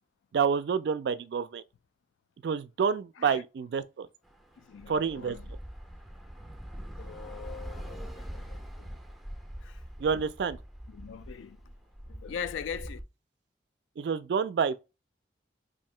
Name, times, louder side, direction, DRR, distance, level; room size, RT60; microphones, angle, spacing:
voice 1, 0.3-1.6 2.4-4.1 4.9-5.4 10.0-10.6 14.0-14.8, right 6 dB, 65° right, 0.3 m, -28 dB
Bus / Traffic noise roadway noise, 4.2-13.0, equal, ahead, 0.4 m, -43 dB
voice 2, 4.6-5.5 6.8-9.0 9.6-9.8 10.9-11.7 12.1-13.0, left 7 dB, 90° left, 0.3 m, -42 dB
2.8 x 2.6 x 4.2 m
head